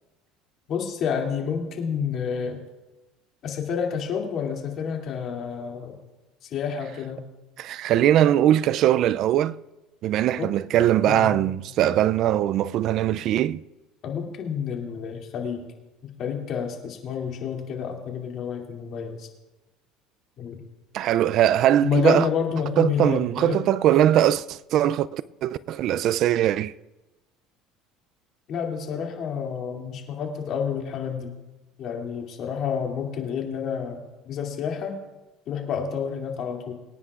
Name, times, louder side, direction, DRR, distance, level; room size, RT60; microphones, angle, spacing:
voice 1, 0.7-2.6 3.4-6.0 6.4-7.2 10.4-10.5 11.0-11.5 14.0-15.6 16.2-19.3 20.4-20.6 21.8-23.6 28.5-31.3 31.8-35.0 35.5-36.7, left 7 dB, 50° left, 2.5 m, -29 dB
voice 2, 7.6-9.6 10.0-13.6 20.9-22.3 22.8-26.7, right 11 dB, 55° right, 0.3 m, -21 dB
24.0 x 9.8 x 2.4 m
cardioid pair, 125°, 0 cm